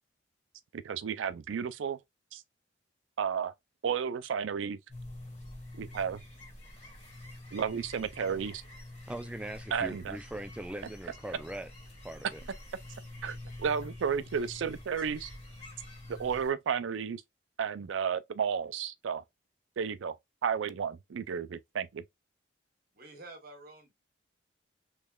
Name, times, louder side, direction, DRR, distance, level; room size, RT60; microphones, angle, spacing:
voice 1, 0.7-2.0 2.3-2.4 3.2-3.5 3.8-4.8 5.7-6.2 7.5-8.6 9.7-10.2 13.2-15.3 16.1-17.2 17.6-19.2 19.8-20.1 20.4-22.0, right 7 dB, 80° right, 0.4 m, -32 dB
sound 1, 4.9-16.5, left 1 dB, 35° left, 1.6 m, -47 dB
voice 2, 9.1-11.7 12.0-12.4, right 1 dB, 5° right, 0.3 m, -40 dB
voice 3, 22.9-23.9, right 2 dB, 50° right, 1.1 m, -49 dB
3.5 x 3.2 x 2.2 m
head